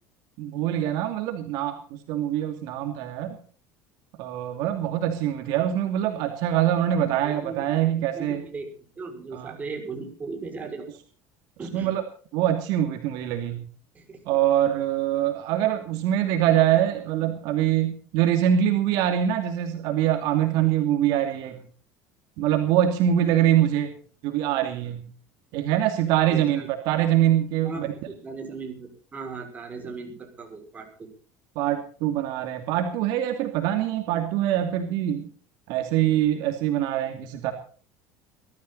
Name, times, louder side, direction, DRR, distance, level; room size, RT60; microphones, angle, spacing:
voice 1, 0.4-3.4 4.2-8.4 9.3-9.6 11.7-12.0 12.3-13.6 14.3-21.6 22.4-23.9 24.2-25.1 25.5-27.9 31.6-35.3 35.7-37.5, right 11 dB, 65° right, 5 dB, 2.6 m, -24 dB
voice 2, 7.0-7.6 8.1-8.7 9.0-10.8 11.6-11.9 13.9-14.3 26.3-26.7 27.6-31.1, right 4 dB, 20° right, 3 dB, 6.0 m, -37 dB
21.5 x 13.5 x 4.1 m, 0.42 s
cardioid pair, 140°, 7 cm